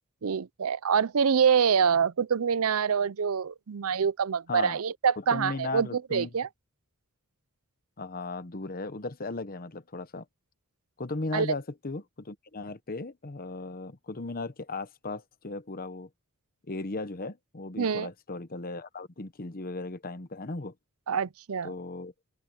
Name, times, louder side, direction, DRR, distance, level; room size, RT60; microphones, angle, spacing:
voice 1, 0.2-6.5 11.3-11.5 17.8-18.1 21.1-21.7, right 6 dB, 75° right, 0.6 m, -26 dB
voice 2, 4.5-4.8 5.3-6.3 8.0-10.3 11.0-16.1 16.7-20.7 21.6-22.1, left 3 dB, 40° left, 1.0 m, -36 dB
open air
head